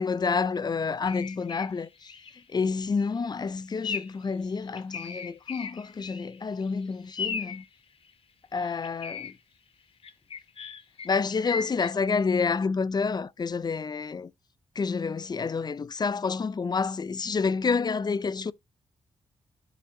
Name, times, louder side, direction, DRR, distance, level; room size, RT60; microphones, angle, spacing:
voice 1, 0.0-2.1 2.5-7.6 8.5-9.3 11.0-14.3 14.8-18.5, left 5 dB, 40° left, 0.6 m, -29 dB
sound 1, 1.0-1.7 2.1-2.4 2.8-3.1 3.8-4.2 4.6-6.4 6.6-6.7 7.1-7.7 8.6-9.3 10.0-11.9, left 5 dB, 65° left, 1.6 m, -36 dB
10.0 x 4.2 x 4.0 m
cardioid pair, 60°, 11 cm